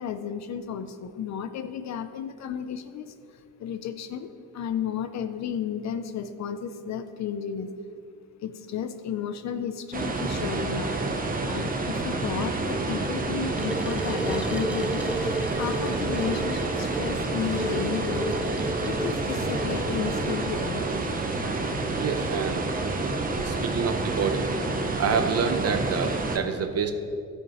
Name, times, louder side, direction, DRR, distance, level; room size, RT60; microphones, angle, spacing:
voice 1, 0.0-3.2 3.6-7.7 8.4-11.0 11.5-15.1 15.5-18.5 18.8-20.9, left 8 dB, 65° left, 10 dB, 0.6 m, -33 dB
sound 1, 9.9-26.4, right 3 dB, 30° right, 0.9 m, -29 dB
sound 2, 13.6-20.7, right 1 dB, 5° right, 0.5 m, -33 dB
voice 2, 22.0-22.7 23.4-24.5 25.0-26.9, right 6 dB, 55° right, 7 dB, 0.9 m, -27 dB
13.5 x 6.6 x 3.1 m, 2.5 s
cardioid pair, 90°, 30 cm